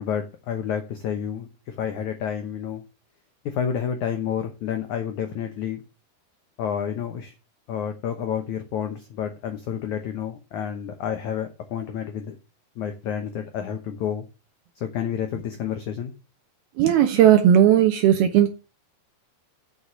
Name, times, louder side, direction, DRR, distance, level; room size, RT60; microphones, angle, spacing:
voice 1, 0.0-2.8 3.4-5.8 6.6-7.3 7.7-12.4 12.8-14.2 14.7-16.1, left 8 dB, 85° left, 1.7 m, -29 dB
voice 2, 16.8-18.5, right 10 dB, 75° right, 2.6 m, -16 dB
7.0 x 6.6 x 7.3 m
omnidirectional pair, 4.9 m